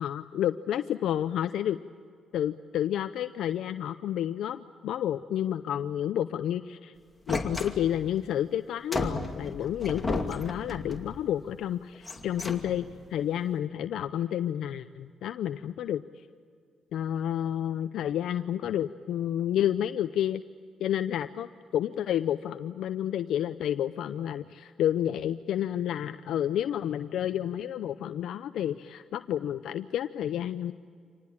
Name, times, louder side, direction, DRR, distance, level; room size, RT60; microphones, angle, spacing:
voice 1, 0.0-1.8 2.3-6.9 7.3-16.0 16.9-20.4 20.8-21.5 21.7-30.7, left 10 dB, 75° left, 10 dB, 0.7 m, -30 dB
sound 1, 7.3-8.2 8.9-11.2 11.9-13.0, left 2 dB, 15° left, 2.5 m, -34 dB
26.5 x 19.5 x 8.7 m, 2.2 s
cardioid pair, 90°, 0 cm